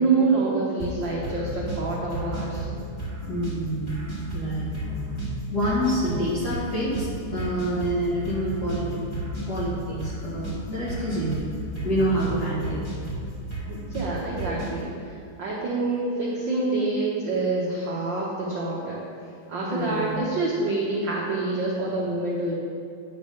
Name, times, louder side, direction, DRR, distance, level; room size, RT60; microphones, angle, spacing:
voice 1, 0.0-2.6 13.7-19.1 19.5-22.5, right 3 dB, 80° right, -4 dB, 1.0 m, -26 dB
sound 1, 0.8-14.8, right 1 dB, 20° left, 0.8 m, -33 dB
voice 2, 3.3-4.0 4.3-5.1 5.5-9.1 9.5-11.5 11.8-12.8 19.7-20.2, equal, 45° left, -8 dB, 1.4 m, -27 dB
9.0 x 3.5 x 6.6 m, 2.6 s
omnidirectional pair, 3.4 m